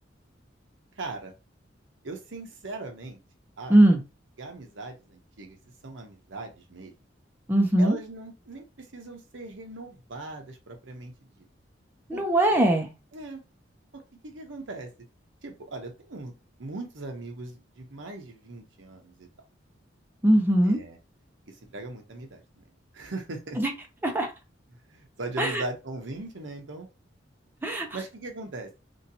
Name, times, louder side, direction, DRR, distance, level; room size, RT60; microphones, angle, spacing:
voice 1, 1.0-1.3 2.0-3.2 3.6-3.8 4.4-5.6 5.8-6.9 7.8-11.4 12.1-12.2 13.1-13.4 13.9-14.9 15.4-16.3 16.6-19.3 20.7-21.0 21.7-22.6 22.9-23.6 24.9-26.9 27.9-28.7, right 2 dB, 80° right, 3 dB, 0.9 m, -39 dB
voice 2, 7.5-8.0 12.1-12.9 20.2-20.8 23.6-23.7 24.0-24.3 25.4-25.6 27.6-27.9, right 1 dB, 10° right, 2 dB, 0.6 m, -20 dB
3.1 x 2.8 x 2.7 m, 0.28 s
head